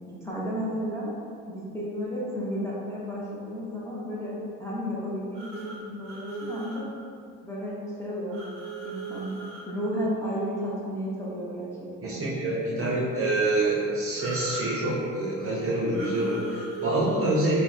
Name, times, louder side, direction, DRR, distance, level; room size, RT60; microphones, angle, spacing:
voice 1, 0.1-1.1 1.5-4.3 4.6-6.9 7.4-8.5 8.8-9.4 9.7-12.2, equal, 5° left, -7 dB, 0.6 m, -33 dB
sound 1, 5.3-6.8 8.3-9.7 14.2-14.8 15.9-16.9, right 4 dB, 70° right, 0.9 m, -38 dB
voice 2, 12.0-17.6, right 2 dB, 35° right, -4 dB, 0.6 m, -26 dB
3.4 x 2.0 x 2.4 m, 2.3 s
hypercardioid pair, 65°, 42 cm